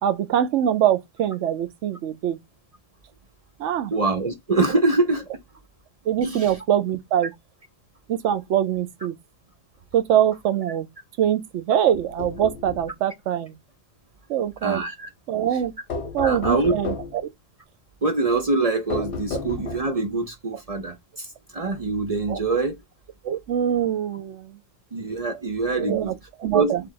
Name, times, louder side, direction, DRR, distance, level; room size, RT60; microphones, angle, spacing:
voice 1, 0.0-2.4 3.6-3.9 6.1-7.3 8.1-9.1 9.9-10.9 11.2-13.6 14.3-14.8 15.3-15.7 16.1-17.0 22.3-22.4 23.2-24.6 25.8-26.8, right 10 dB, 70° right, 0.9 m, -23 dB
voice 2, 3.9-5.3 6.2-6.5 14.6-15.1 16.2-16.7 18.0-21.3 21.5-22.8 24.9-26.1 26.5-26.8, right 3 dB, 40° right, 0.5 m, -24 dB
sound 1, 11.9-12.9 15.9-17.2 18.9-20.1, left 5 dB, 60° left, 1.1 m, -32 dB
3.4 x 2.5 x 4.5 m
omnidirectional pair, 1.3 m